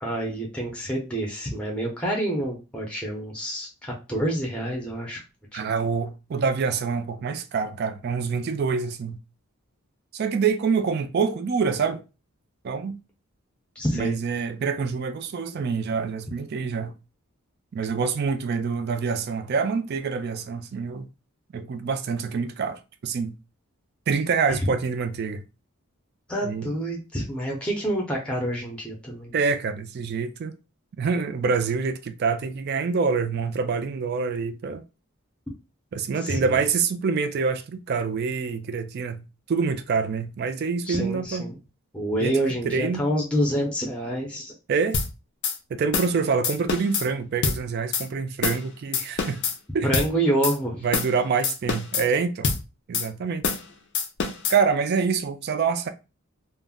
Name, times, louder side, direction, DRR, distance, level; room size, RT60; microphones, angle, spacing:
voice 1, 0.0-5.2 5.5-5.7 13.8-14.2 24.5-24.7 26.3-29.3 36.2-36.6 40.8-41.6 41.9-44.5 49.8-50.8, right 1 dB, 5° left, 0.6 m, -27 dB
voice 2, 5.5-9.2 10.1-12.0 12.6-12.9 13.9-16.9 17.7-21.1 21.5-23.3 24.1-25.4 26.4-26.7 29.3-30.5 31.0-34.8 35.9-41.5 42.2-42.4 42.6-43.1 44.7-45.0 45.7-49.4 49.7-49.9 50.8-52.5 52.9-53.5 54.5-55.9, right 5 dB, 45° right, 0.3 m, -26 dB
sound 1, 44.9-45.1 45.4-45.6 45.9-46.1 46.4-47.1 47.4-47.6 47.9-48.1 48.4-48.6 48.9-49.6 49.9-50.1 50.4-50.6 50.9-51.1 51.4-52.1 52.4-52.6 52.9-53.1 53.4-53.7 54.0-54.6, left 5 dB, 55° left, 0.5 m, -25 dB
2.3 x 2.0 x 3.5 m
head